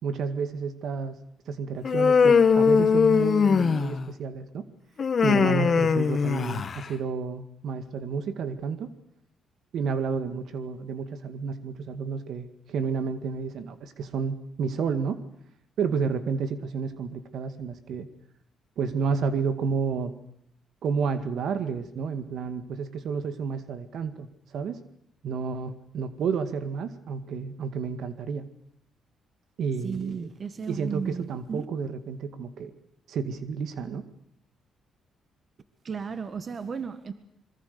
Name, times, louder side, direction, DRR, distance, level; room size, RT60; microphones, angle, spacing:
voice 1, 0.0-1.2 1.5-4.7 5.2-8.9 9.7-15.2 15.8-18.1 18.8-20.1 20.8-24.3 24.5-24.8 25.2-28.5 29.6-30.3 30.7-32.7 33.1-34.0, right 5 dB, 70° right, 10 dB, 2.0 m, -30 dB
Human voice, 1.8-4.1 5.0-6.9, left 6 dB, 45° left, 1.7 m, -21 dB
voice 2, 29.8-31.6 35.8-37.1, right 5 dB, 45° right, 10 dB, 1.7 m, -34 dB
25.0 x 22.5 x 6.9 m, 0.71 s
cardioid pair, 90°, 0 cm